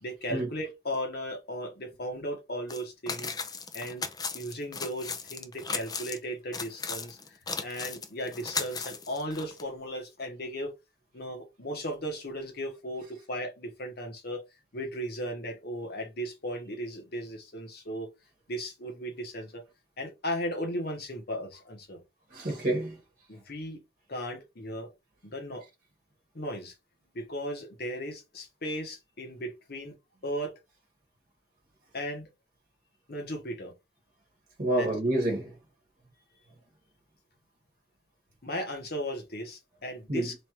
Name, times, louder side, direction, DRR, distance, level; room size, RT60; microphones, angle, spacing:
voice 1, 0.0-3.3 3.7-4.1 4.3-7.2 7.6-10.7 11.1-14.4 14.7-18.1 18.5-19.6 20.0-22.0 23.3-23.8 24.1-24.9 25.2-25.6 26.3-26.7 27.1-29.9 30.2-30.5 31.9-32.3 33.1-33.7 34.8-34.9 38.4-40.3, equal, 60° left, 1.2 m, -36 dB
sound 1, 2.7-2.8 3.1-6.2 6.5-9.6, left 5 dB, 20° left, 0.5 m, -36 dB
voice 2, 22.3-23.0 34.6-35.6 40.1-40.3, right 1 dB, 50° right, 1.1 m, -28 dB
3.3 x 2.5 x 4.5 m
head